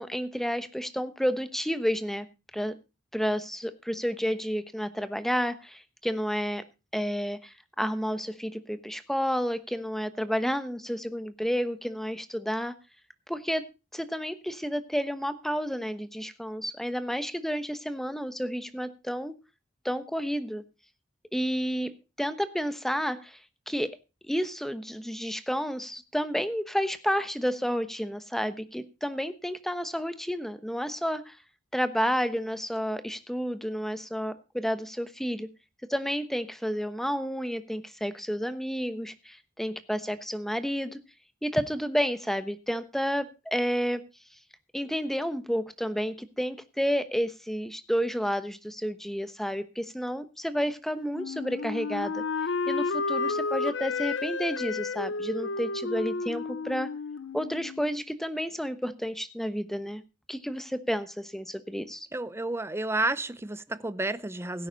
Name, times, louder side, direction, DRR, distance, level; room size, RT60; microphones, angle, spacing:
voice 1, 0.0-2.3 2.5-2.7 3.1-6.6 6.9-12.7 13.3-13.6 13.9-19.3 19.8-20.6 21.3-21.9 22.2-23.4 23.7-23.9 24.2-31.4 31.7-35.5 35.9-41.0 41.4-44.0 44.7-52.2 52.7-56.9 57.3-60.0 60.3-62.1, equal, ahead, 1.1 m, -30 dB
Wind instrument woodwind instrument, 51.1-58.0, left 4 dB, 70° left, 0.7 m, -31 dB
voice 2, 62.1-64.7, right 2 dB, 15° right, 0.7 m, -31 dB
16.5 x 9.6 x 4.0 m
head